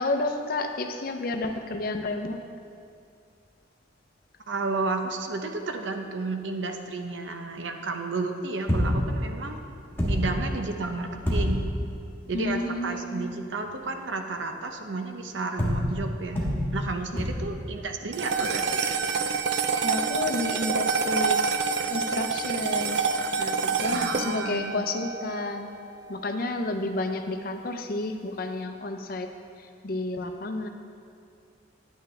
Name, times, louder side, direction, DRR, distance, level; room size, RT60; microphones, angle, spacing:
voice 1, 0.0-2.4 12.3-13.3 19.7-21.4 21.9-23.0 23.4-25.7 26.1-29.3 29.6-30.7, left 2 dB, 50° left, 5 dB, 0.6 m, -31 dB
voice 2, 4.5-9.7 10.0-11.6 12.3-16.5 16.7-18.9 23.9-24.8, right 3 dB, 80° right, 5 dB, 0.8 m, -32 dB
sound 1, 8.7-9.1 9.6-9.7 10.0-10.5 11.2-11.8 15.6-16.0 16.3-16.8 17.2-17.6 19.9-20.0, equal, 10° left, 1.4 m, -26 dB
sound 2, 18.1-26.6, right 5 dB, 60° right, 0.4 m, -28 dB
10.0 x 9.1 x 3.3 m, 2.4 s
head